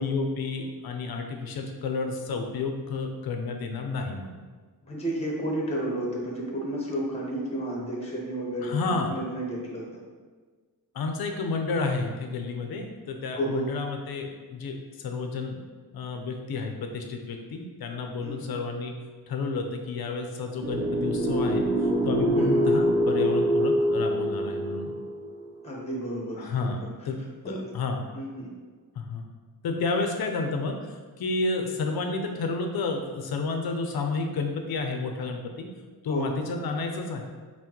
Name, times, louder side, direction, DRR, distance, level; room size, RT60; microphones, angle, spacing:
voice 1, 0.0-4.4 8.6-9.2 10.9-15.6 15.9-18.9 19.3-24.9 26.4-26.8 27.0-27.2 27.5-28.0 29.0-29.2 29.6-35.7 36.0-37.3, left 3 dB, 75° left, 4 dB, 0.6 m, -31 dB
voice 2, 4.9-9.8 13.3-13.7 18.2-18.5 22.4-22.6 25.6-26.5 27.4-27.6 28.1-28.5 36.1-36.3, right 1 dB, 15° left, -3 dB, 0.9 m, -31 dB
sound 1, 20.6-25.7, equal, 45° right, 0.7 m, -25 dB
5.6 x 2.2 x 3.0 m, 1.4 s
wide cardioid pair, 120°, 37 cm